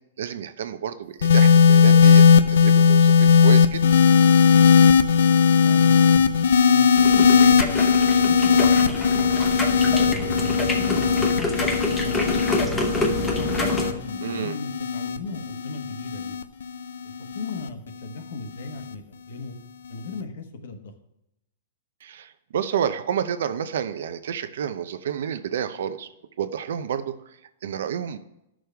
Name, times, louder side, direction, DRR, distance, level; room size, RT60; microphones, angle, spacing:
voice 1, 0.2-3.8 14.2-14.6 22.0-26.1 26.4-27.4 27.6-28.2, right 8 dB, 60° right, 11 dB, 0.7 m, -30 dB
sound 1, 1.2-17.7 18.6-18.9, left 6 dB, 90° left, 0.6 m, -18 dB
voice 2, 5.6-6.3 6.7-7.8 8.3-9.3 9.9-12.8 13.2-16.4 17.3-19.6 19.9-20.9, left 3 dB, 60° left, 6 dB, 1.2 m, -37 dB
sound 2, 7.0-13.9, left 2 dB, 5° left, 0.9 m, -27 dB
13.0 x 6.2 x 3.5 m, 0.85 s
hypercardioid pair, 175°, 0 cm